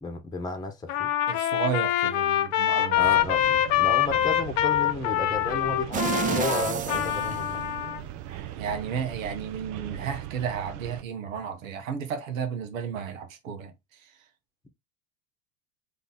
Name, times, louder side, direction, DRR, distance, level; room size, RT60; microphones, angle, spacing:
voice 1, 0.0-1.1 3.0-7.6, left 3 dB, 10° left, 0.9 m, -33 dB
Trumpet, 0.9-8.0, left 12 dB, 80° left, 0.8 m, -25 dB
voice 2, 1.3-3.0 8.3-13.7 14.0-14.1, right 7 dB, 90° right, 0.9 m, -33 dB
sound 1, 2.9-11.0, right 12 dB, 55° right, 0.6 m, -39 dB
sound 2, 5.9-8.1 8.5-8.6, right 7 dB, 20° right, 0.3 m, -30 dB
3.9 x 2.8 x 3.7 m
hypercardioid pair, 85°, 39 cm